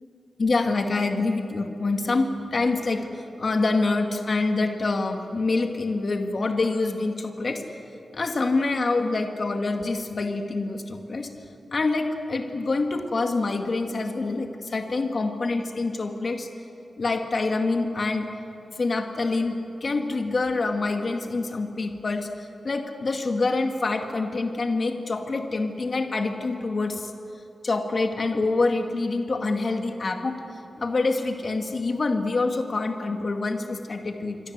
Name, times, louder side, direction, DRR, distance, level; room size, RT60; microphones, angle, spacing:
voice 1, 0.4-7.6 8.1-11.3 11.7-16.5 17.0-18.3 18.8-27.1 27.6-30.4 30.8-34.4, left 3 dB, 45° left, 4 dB, 2.1 m, -26 dB
27.5 x 24.0 x 8.1 m, 2.9 s
wide cardioid pair, 160°, 0 cm